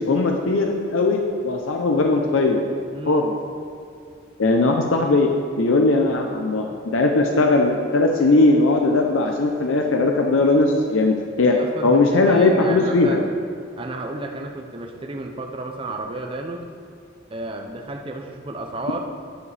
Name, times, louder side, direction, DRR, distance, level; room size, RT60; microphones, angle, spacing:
voice 1, 0.0-2.6 3.1-3.3 4.4-5.3 5.6-6.7 6.9-11.5 11.8-13.2, left 2 dB, 85° left, 2 dB, 0.6 m, -19 dB
voice 2, 2.9-3.3 11.5-13.2 13.8-16.6 17.3-19.0, right 2 dB, 25° right, 3 dB, 0.5 m, -32 dB
9.5 x 7.3 x 3.3 m, 2.3 s
head